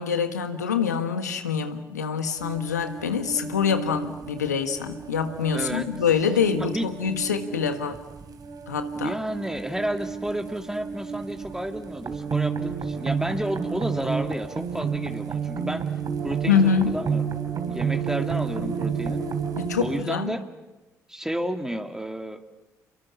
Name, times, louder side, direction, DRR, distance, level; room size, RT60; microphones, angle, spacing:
voice 1, 0.0-8.0 8.7-9.1 16.5-16.9 19.6-20.4, left 6 dB, 85° left, 8 dB, 1.6 m, -25 dB
sound 1, 2.4-20.0, right 6 dB, 45° right, 3.2 m, -31 dB
voice 2, 5.5-5.9 6.6-6.9 8.9-15.8 16.2-17.2 17.7-19.2 19.8-20.4 21.1-22.4, right 1 dB, 5° right, 5 dB, 2.4 m, -31 dB
30.0 x 23.0 x 7.3 m, 1.1 s
figure-of-eight pair, 45°, 9 cm